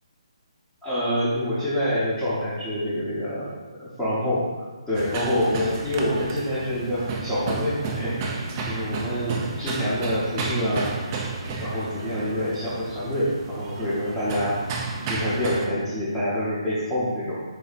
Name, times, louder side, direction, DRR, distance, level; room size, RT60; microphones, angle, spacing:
voice 1, 0.8-4.5 4.9-8.4 8.6-10.9 11.6-14.7 15.1-17.5, equal, ahead, -15 dB, 0.8 m, -26 dB
sound 1, 4.9-15.7, right 4 dB, 20° right, 0.4 m, -32 dB
4.1 x 2.6 x 4.0 m, 1.3 s
hypercardioid pair, 165°, 3 cm